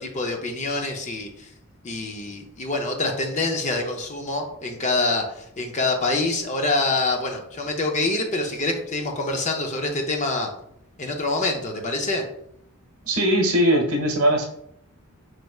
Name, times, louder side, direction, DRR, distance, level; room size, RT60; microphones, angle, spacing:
voice 1, 0.0-1.5 1.8-10.5 11.0-12.2, left 2 dB, 35° left, 3 dB, 0.5 m, -26 dB
voice 2, 13.0-14.5, equal, 70° right, 1 dB, 1.0 m, -20 dB
4.4 x 3.2 x 2.3 m, 0.72 s
head